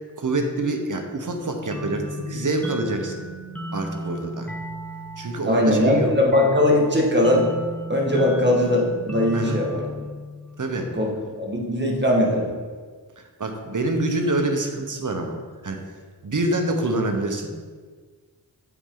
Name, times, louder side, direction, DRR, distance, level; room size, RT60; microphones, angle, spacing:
voice 1, 0.2-3.2 3.7-4.5 5.2-6.1 9.3-9.6 10.6-10.9 13.2-15.4 15.6-15.8 16.2-17.5, right 2 dB, 50° right, 4 dB, 1.0 m, -26 dB
sound 1, 1.7-11.1, equal, 5° left, 0.8 m, -35 dB
voice 2, 5.5-7.5 7.9-10.0 10.9-11.1 11.4-12.5, left 1 dB, 30° right, -2 dB, 1.8 m, -20 dB
8.2 x 4.3 x 3.9 m, 1.5 s
cardioid pair, 45°, 38 cm